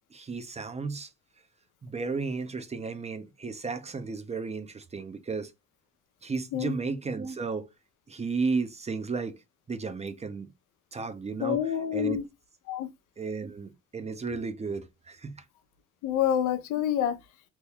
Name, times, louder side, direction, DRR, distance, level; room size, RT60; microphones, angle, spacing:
voice 1, 0.1-1.1 1.8-5.5 6.2-7.7 8.1-9.4 9.7-10.5 10.9-11.6 11.9-12.2 13.2-15.4, right 4 dB, 20° right, 0.5 m, -33 dB
voice 2, 11.4-12.2 12.7-12.9 16.0-17.2, left 10 dB, 85° left, 0.6 m, -27 dB
2.9 x 2.2 x 3.4 m
cardioid pair, 90°, 30 cm